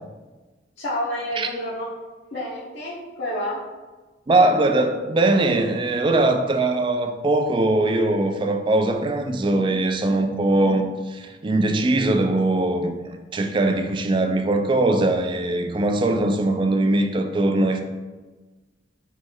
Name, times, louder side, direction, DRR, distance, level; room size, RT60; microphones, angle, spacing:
voice 1, 0.8-1.9 2.3-3.6, left 1 dB, 70° left, 0.9 m, -29 dB
voice 2, 4.3-17.8, right 2 dB, 25° right, 0.3 m, -21 dB
3.1 x 3.1 x 3.6 m
head